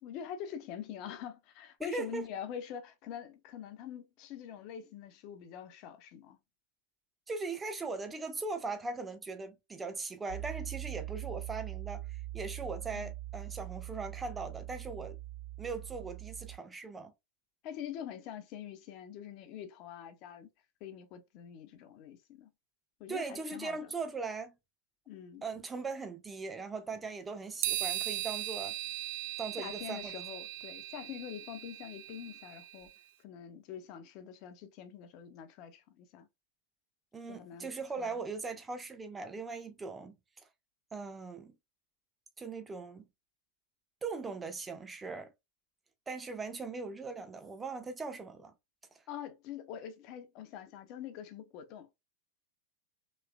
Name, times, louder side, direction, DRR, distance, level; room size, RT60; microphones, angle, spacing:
voice 1, 0.0-6.4 12.9-13.1 17.6-20.5 20.8-22.5 23.0-23.9 25.1-25.4 29.6-32.9 33.2-36.3 37.3-37.7 38.0-38.2 49.1-51.9, left 9 dB, 40° left, 0.6 m, -45 dB
voice 2, 1.8-2.2 7.3-15.2 15.6-17.1 23.1-24.5 25.4-28.7 29.4-30.1 37.1-40.2 40.9-41.5 42.4-43.0 44.0-45.3 46.1-48.5, right 4 dB, 15° right, 0.7 m, -39 dB
Piano, 10.3-16.6, right 16 dB, 80° right, 1.2 m, -42 dB
sound 1, 27.6-32.9, right 15 dB, 50° right, 0.3 m, -38 dB
3.2 x 3.1 x 2.3 m
figure-of-eight pair, 90°, 0 cm